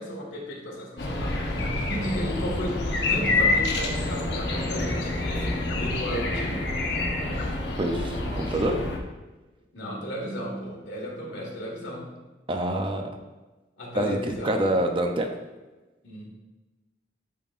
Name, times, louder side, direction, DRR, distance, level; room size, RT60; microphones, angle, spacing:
voice 1, 0.0-1.4 1.8-6.7 9.7-12.1 13.8-14.8 16.0-16.3, equal, 85° left, -2 dB, 1.7 m, -34 dB
sound 1, 1.0-9.0, left 2 dB, 65° left, 0.9 m, -27 dB
voice 2, 7.8-8.8 12.5-13.1 13.9-15.3, right 1 dB, 30° right, 4 dB, 0.5 m, -26 dB
10.5 x 3.7 x 2.5 m, 1.1 s
head